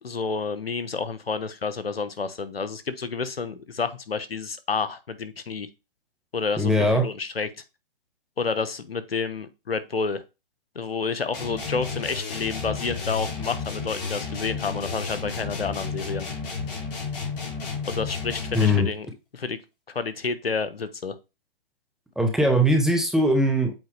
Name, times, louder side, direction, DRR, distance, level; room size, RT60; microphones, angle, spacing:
voice 1, 0.0-5.7 6.3-7.5 8.4-10.2 10.7-16.3 17.9-19.1 19.3-19.6 19.9-21.2, left 5 dB, 85° left, 1.1 m, -29 dB
voice 2, 6.6-7.1 18.5-18.9 22.2-23.7, equal, ahead, 0.8 m, -20 dB
sound 1, 11.3-19.0, left 4 dB, 45° left, 4.0 m, -32 dB
7.8 x 4.7 x 3.3 m
figure-of-eight pair, 135°, 29 cm